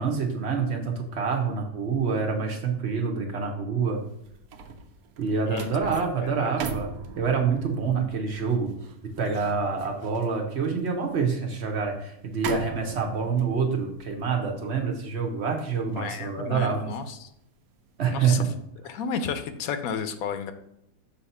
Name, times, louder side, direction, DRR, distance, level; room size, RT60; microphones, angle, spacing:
voice 1, 0.0-4.0 5.2-6.9 7.2-8.7 9.2-16.9 18.0-18.4, right 5 dB, 55° right, 2 dB, 1.0 m, -27 dB
sound 1, 4.0-17.3 17.7-18.0, right 5 dB, 85° right, 1.1 m, -41 dB
voice 2, 5.5-5.9 6.2-6.5 15.9-17.3 18.1-18.4 18.8-20.5, left 6 dB, 80° left, 9 dB, 1.0 m, -32 dB
6.3 x 2.8 x 5.4 m, 0.81 s
omnidirectional pair, 1.5 m